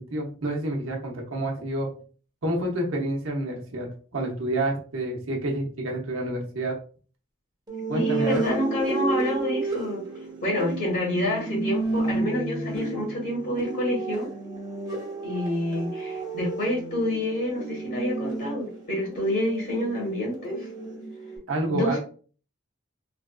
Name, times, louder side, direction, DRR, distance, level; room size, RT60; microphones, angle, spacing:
voice 1, 0.1-1.9 2.4-3.9 4.1-6.7 7.9-8.4 21.5-22.0, right 1 dB, 80° right, 0 dB, 0.9 m, -28 dB
sound 1, 7.7-21.4, right 3 dB, 20° right, 1.1 m, -32 dB
voice 2, 7.9-10.0 10.4-14.3 15.2-20.7 21.7-22.0, left 1 dB, 60° left, -4 dB, 1.4 m, -28 dB
3.2 x 2.5 x 2.3 m, 0.40 s
head